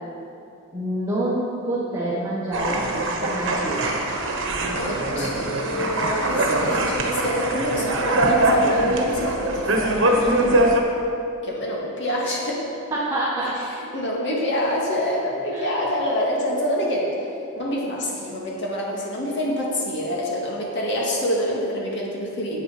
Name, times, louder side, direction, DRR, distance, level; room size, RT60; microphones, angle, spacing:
voice 1, 0.7-3.9 10.5-10.7 12.9-13.6 15.5-15.7, right 1 dB, 15° right, -7 dB, 1.4 m, -27 dB
sound 1, 2.5-10.8, right 1 dB, 65° right, 1.3 m, -22 dB
voice 2, 4.7-10.4 11.4-12.6 13.9-17.3 17.6-22.6, left 1 dB, 60° left, -3 dB, 2.1 m, -26 dB
9.2 x 8.1 x 6.0 m, 2.7 s
head